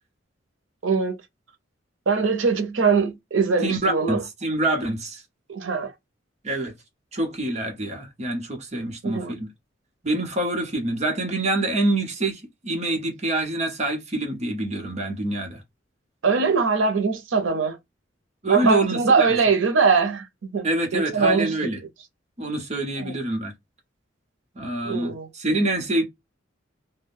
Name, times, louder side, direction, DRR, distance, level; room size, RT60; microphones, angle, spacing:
voice 1, 0.8-1.2 2.1-4.2 5.5-5.9 9.0-9.3 16.2-17.8 18.5-21.6 23.0-23.1 24.8-25.3, right 4 dB, 85° right, 0.6 m, -22 dB
voice 2, 3.6-5.2 6.4-6.7 7.1-9.5 10.0-15.6 18.4-19.3 20.6-21.8 22.4-23.5 24.5-26.0, right 2 dB, 35° right, 0.8 m, -26 dB
2.5 x 2.2 x 3.3 m
head